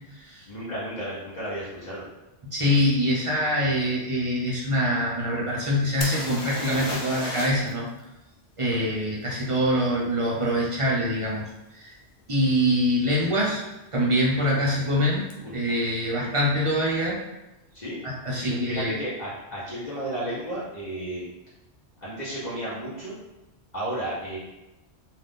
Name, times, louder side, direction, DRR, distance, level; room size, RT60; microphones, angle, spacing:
voice 1, 0.5-2.1 8.7-8.9 15.4-15.5 17.7-18.0 18.4-21.2 22.0-23.2 23.7-24.4, right 1 dB, 45° left, -8 dB, 0.8 m, -33 dB
voice 2, 2.4-7.9 8.6-11.4 11.7-11.9 12.3-13.6 13.9-15.3 15.5-17.2 18.0-18.9, equal, 35° right, -5 dB, 0.5 m, -24 dB
sound 1, 6.0-7.7 8.0-8.1 11.5-11.6 12.2-12.4 12.7-13.3 15.3-15.4 15.7-15.8, left 2 dB, 80° left, 0.9 m, -34 dB
2.6 x 2.4 x 3.5 m, 1.0 s
omnidirectional pair, 1.1 m